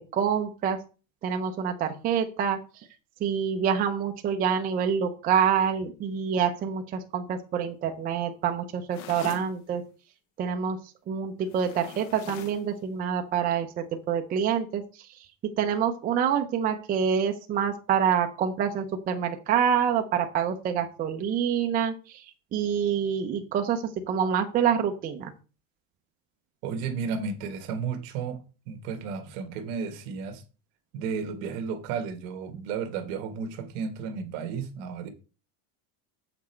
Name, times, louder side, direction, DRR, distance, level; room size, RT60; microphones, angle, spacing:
voice 1, 0.1-0.8 1.2-2.6 3.2-9.8 10.4-10.8 11.1-15.3 15.6-25.3, right 8 dB, 20° right, 0.5 m, -27 dB
sound 1, 8.9-9.5 11.5-12.7, left 8 dB, 40° left, 0.9 m, -42 dB
voice 2, 26.6-30.4 30.9-35.1, right 6 dB, 60° right, 1.4 m, -33 dB
7.5 x 6.0 x 4.4 m
cardioid pair, 170°, 44 cm